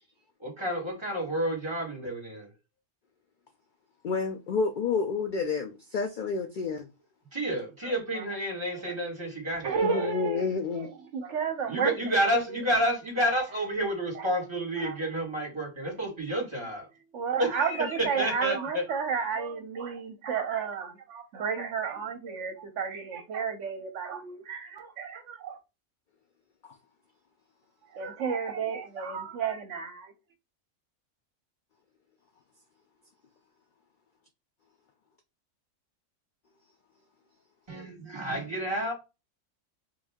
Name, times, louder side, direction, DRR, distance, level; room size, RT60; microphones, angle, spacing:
voice 1, 0.4-2.5 7.3-10.1 11.7-16.9 17.4-18.8 37.7-38.9, equal, 20° right, 1.6 m, -30 dB
voice 2, 4.0-6.9 9.8-10.9 26.6-26.8, left 4 dB, 70° left, 0.4 m, -30 dB
voice 3, 7.8-8.2 8.7-9.0 9.6-11.9 12.5-12.6 14.8-14.9 17.1-25.6 27.9-30.1, right 6 dB, 70° right, 1.0 m, -32 dB
3.4 x 2.6 x 3.5 m
omnidirectional pair, 1.4 m